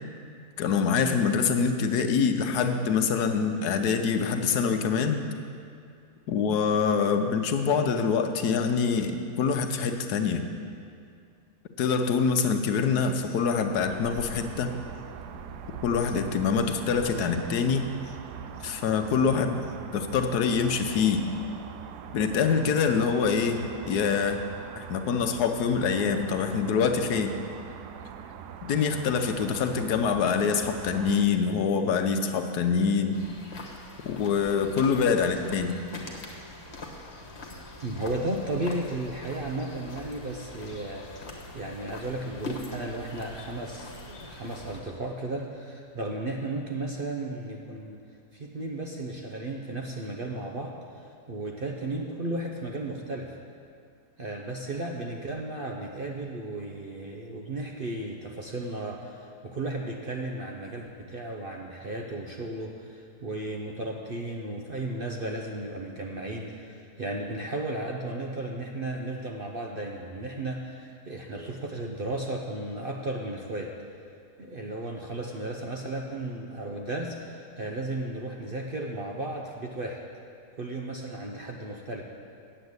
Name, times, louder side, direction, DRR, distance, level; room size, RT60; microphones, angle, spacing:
voice 1, 0.6-5.2 6.3-10.5 11.8-14.8 15.8-17.9 18.6-19.6 19.9-21.3 22.1-24.4 24.8-27.3 28.7-33.2 34.0-35.8, left 6 dB, 75° left, 6 dB, 1.3 m, -25 dB
sound 1, 13.7-31.3, right 7 dB, 80° right, 1.2 m, -42 dB
sound 2, 33.1-44.8, left 2 dB, 45° left, 1.4 m, -43 dB
voice 2, 37.8-48.0 48.3-53.3 54.2-73.7 74.4-80.0 80.6-82.0, right 2 dB, 50° right, 0 dB, 0.7 m, -34 dB
9.0 x 7.8 x 8.0 m, 2.3 s
omnidirectional pair, 1.7 m